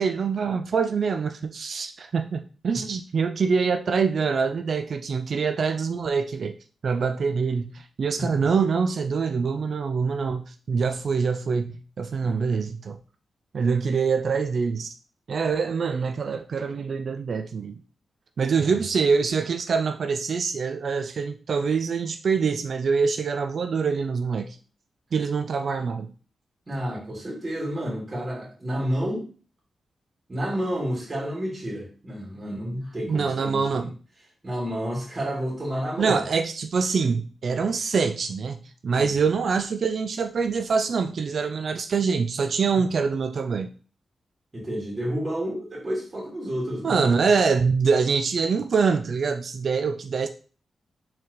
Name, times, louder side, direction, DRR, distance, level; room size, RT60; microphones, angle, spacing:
voice 1, 0.0-6.5 6.8-13.0 13.5-14.9 15.3-17.8 18.4-24.6 25.1-26.1 33.1-33.9 36.0-43.7 46.8-50.3, right 5 dB, 65° right, 8 dB, 0.3 m, -25 dB
voice 2, 8.1-8.5 12.2-12.6 18.6-18.8 26.7-29.2 30.3-33.9 34.4-36.2 38.9-39.1 42.7-42.8 44.5-47.0, equal, 35° right, -4 dB, 2.2 m, -30 dB
4.4 x 3.9 x 3.1 m, 0.38 s
cardioid pair, 50°, 0 cm